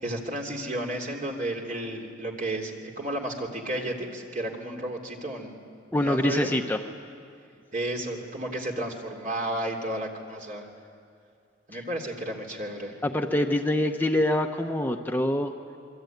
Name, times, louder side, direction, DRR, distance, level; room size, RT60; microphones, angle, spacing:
voice 1, 0.0-5.6 6.0-6.5 7.7-10.7 11.7-13.0, right 1 dB, 45° right, 1 dB, 3.3 m, -32 dB
voice 2, 5.9-6.8 13.0-15.5, left 1 dB, 10° left, 4 dB, 0.9 m, -25 dB
27.5 x 23.0 x 9.3 m, 2.3 s
head